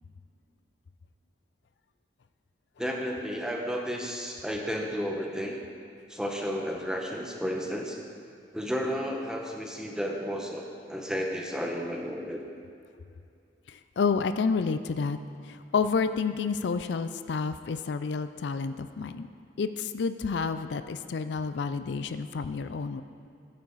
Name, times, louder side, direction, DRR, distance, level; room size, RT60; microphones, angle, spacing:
voice 1, 2.8-5.6 6.1-8.0 8.5-12.4, equal, 5° right, 1 dB, 0.9 m, -32 dB
voice 2, 13.7-15.2 15.4-19.3 19.6-23.0, left 5 dB, 75° left, 11 dB, 0.4 m, -29 dB
14.5 x 8.7 x 4.1 m, 2.5 s
head